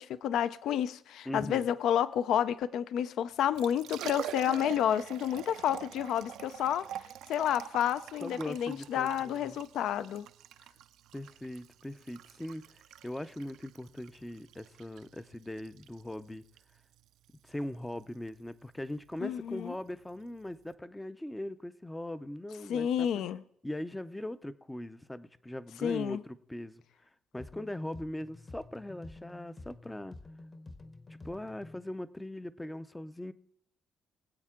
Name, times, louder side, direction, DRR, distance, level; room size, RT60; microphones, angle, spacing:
voice 1, 0.0-6.8 7.3-10.3 19.2-19.7 22.7-23.4 25.8-26.2, left 10 dB, 70° left, 0.4 m, -30 dB
voice 2, 1.3-1.7 8.2-9.6 11.1-16.4 17.5-23.2 23.6-26.8 27.3-30.2 31.1-33.3, left 1 dB, 5° left, 0.4 m, -40 dB
Liquid, 3.4-20.7, right 12 dB, 80° right, 0.4 m, -46 dB
sound 1, 27.4-31.9, left 2 dB, 25° left, 0.9 m, -50 dB
23.5 x 8.2 x 3.7 m
cardioid pair, 165°, 0 cm